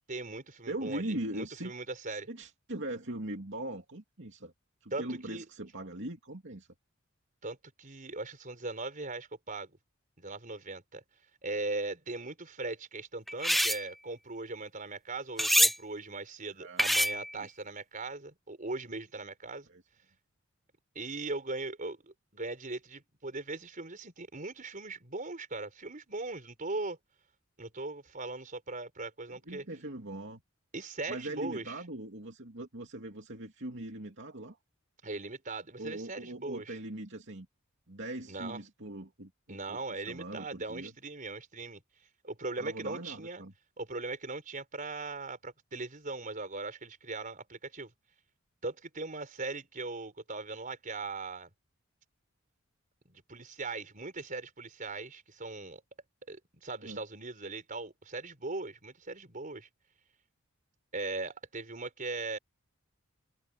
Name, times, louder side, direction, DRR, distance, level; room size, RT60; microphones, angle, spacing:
voice 1, 0.1-2.3 4.9-5.4 7.4-9.8 10.2-11.0 11.4-19.7 20.9-27.0 27.6-29.6 30.7-31.8 35.0-36.8 38.3-38.6 39.5-41.8 42.2-43.4 43.8-47.9 48.6-51.5 53.0-55.8 56.3-59.7 60.9-62.4, right 3 dB, 40° right, 4.8 m, -39 dB
voice 2, 0.7-1.7 2.1-4.5 4.8-6.7 16.6-16.8 17.4-17.5 19.7-19.8 29.5-30.4 31.1-34.6 35.8-37.5 37.9-39.8 40.1-40.9 42.6-43.5 56.8-57.0, right 1 dB, 60° right, 2.8 m, -40 dB
sound 1, 13.3-13.8 15.4-15.8 16.8-17.3, equal, ahead, 0.5 m, -25 dB
head